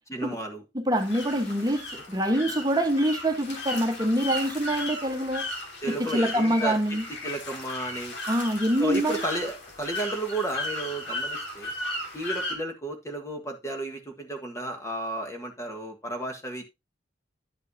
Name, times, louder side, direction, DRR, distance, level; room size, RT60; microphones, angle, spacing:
voice 1, 0.1-0.6 5.8-7.0 7.2-8.2 8.8-11.7 12.1-16.6, right 1 dB, 15° left, 1.6 m, -33 dB
voice 2, 0.7-5.5 5.9-7.0 8.3-9.2, right 1 dB, 20° right, 1.3 m, -25 dB
sound 1, 1.0-12.5, left 1 dB, 65° left, 3.0 m, -36 dB
11.0 x 7.4 x 2.8 m
head